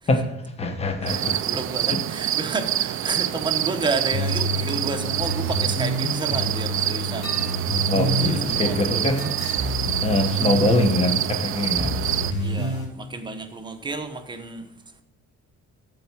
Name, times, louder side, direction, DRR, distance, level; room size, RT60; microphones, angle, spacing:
voice 1, 0.1-1.6 1.9-2.0 7.9-9.3 10.0-12.0, left 2 dB, 20° left, 1.1 m, -23 dB
voice 2, 1.0-7.3 7.6-7.7 8.0-8.8 12.4-14.7, right 3 dB, 15° right, 0.9 m, -31 dB
sound 1, 1.1-12.3, right 12 dB, 45° right, 0.4 m, -27 dB
sound 2, 4.1-12.8, equal, 35° left, 3.1 m, -29 dB
sound 3, 5.2-5.6 7.2-7.8 9.2-9.6, left 2 dB, 65° left, 2.9 m, -39 dB
14.0 x 4.7 x 4.4 m
cardioid pair, 155°, 30 cm